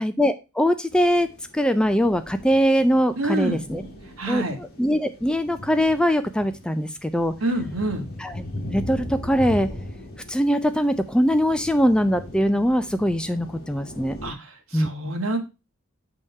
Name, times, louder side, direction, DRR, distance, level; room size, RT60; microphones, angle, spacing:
voice 1, 0.0-3.8 4.3-7.3 8.2-8.4 8.7-9.7 10.3-14.2 14.7-15.2, equal, 5° left, 10 dB, 0.4 m, -22 dB
sound 1, 0.9-14.3, left 1 dB, 50° left, 1.7 m, -39 dB
voice 2, 3.2-3.6 4.2-4.6 7.4-8.1 14.2-15.4, right 2 dB, 80° right, 4 dB, 1.5 m, -27 dB
6.9 x 3.6 x 5.2 m, 0.28 s
head